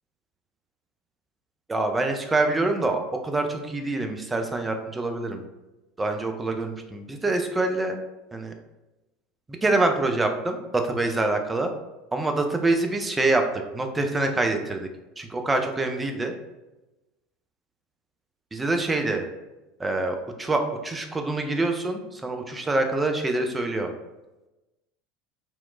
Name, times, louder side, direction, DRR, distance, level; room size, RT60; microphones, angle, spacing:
voice 1, 1.7-5.4 6.0-8.0 8.3-8.5 9.6-11.7 12.1-13.4 13.7-14.9 15.2-16.3 18.5-19.2 19.8-23.9, right 2 dB, 15° right, 5 dB, 0.3 m, -25 dB
2.8 x 2.1 x 2.4 m, 1.0 s
figure-of-eight pair, 70°, 0 cm